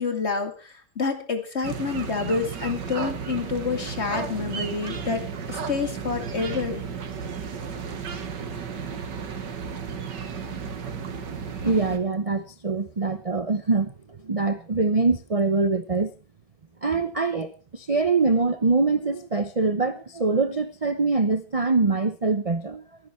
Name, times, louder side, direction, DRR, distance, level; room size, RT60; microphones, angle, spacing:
voice 1, 0.0-6.8, left 5 dB, 40° left, 7 dB, 2.4 m, -28 dB
sound 1, 1.6-12.0, right 6 dB, 90° right, 2.2 m, -33 dB
voice 2, 11.6-16.1 16.8-22.8, right 3 dB, 35° right, 11 dB, 0.6 m, -24 dB
23.5 x 10.0 x 4.4 m, 0.35 s
omnidirectional pair, 1.8 m